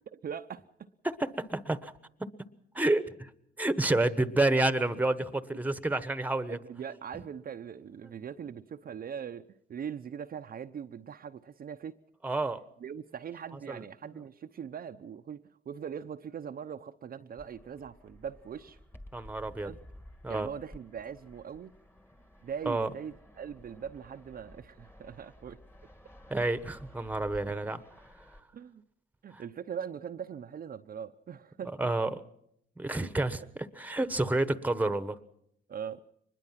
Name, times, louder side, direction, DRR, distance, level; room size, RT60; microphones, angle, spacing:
voice 1, 0.1-0.9 6.5-12.0 12.8-18.8 19.6-19.8 20.3-21.7 22.4-25.6 28.5-28.8 29.2-31.8 32.9-33.1 35.7-36.0, right 8 dB, 50° right, 6 dB, 0.8 m, -41 dB
voice 2, 1.0-1.9 2.7-3.3 3.6-6.6 12.2-12.6 13.7-13.8 19.1-19.7 20.2-20.5 22.6-22.9 26.3-27.8 29.3-29.4 31.8-32.2 32.8-35.2, right 2 dB, 10° right, 12 dB, 1.2 m, -29 dB
Fixed-wing aircraft airplane, 17.4-28.4, left 1 dB, 10° left, 1.8 m, -53 dB
24.0 x 21.0 x 5.9 m, 0.74 s
cardioid pair, 90°, 20 cm